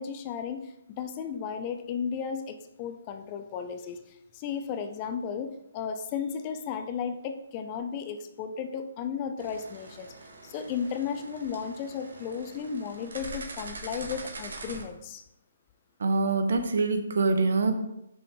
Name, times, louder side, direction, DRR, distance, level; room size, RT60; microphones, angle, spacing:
voice 1, 0.0-10.1 10.4-15.2, left 7 dB, 20° left, 8 dB, 0.4 m, -34 dB
sound 1, 9.4-14.8, right 2 dB, 85° right, 1.5 m, -43 dB
voice 2, 16.0-17.7, right 3 dB, 65° right, 7 dB, 1.0 m, -24 dB
6.1 x 5.5 x 3.8 m, 0.84 s
hypercardioid pair, 170°, 0 cm